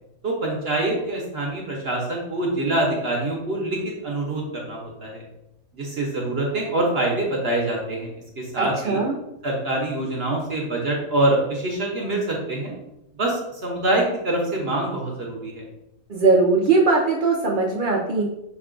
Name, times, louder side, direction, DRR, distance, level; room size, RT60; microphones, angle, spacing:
voice 1, 0.2-5.2 5.7-8.1 8.4-9.0 9.4-12.7 13.2-15.6, right 2 dB, 50° right, -1 dB, 0.9 m, -25 dB
voice 2, 8.6-9.1 16.1-18.2, right 3 dB, 75° right, -2 dB, 0.4 m, -20 dB
6.1 x 2.3 x 3.7 m, 0.88 s
omnidirectional pair, 1.7 m